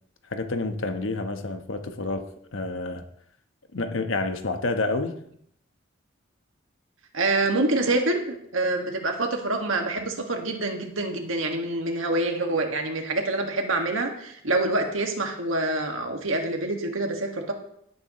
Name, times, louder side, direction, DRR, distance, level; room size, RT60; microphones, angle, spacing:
voice 1, 0.3-2.2 2.5-3.0 3.7-5.1, left 2 dB, 80° left, 7 dB, 1.1 m, -28 dB
voice 2, 7.1-17.5, right 2 dB, 90° right, 3 dB, 1.8 m, -26 dB
17.5 x 8.4 x 3.1 m, 0.72 s
head